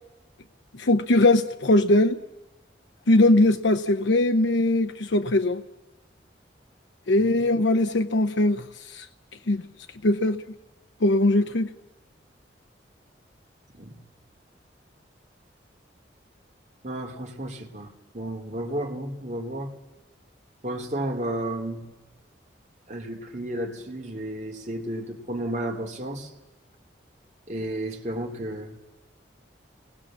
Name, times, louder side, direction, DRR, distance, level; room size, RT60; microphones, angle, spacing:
voice 1, 0.7-2.2 3.1-5.6 7.1-9.1 9.5-9.6 10.0-10.4 11.0-11.7, left 2 dB, 85° left, 0.8 m, -21 dB
voice 2, 16.8-17.9 18.1-19.7 20.6-21.9 22.9-26.3 27.5-28.8, right 1 dB, 40° right, 2.5 m, -32 dB
28.0 x 19.5 x 7.3 m
head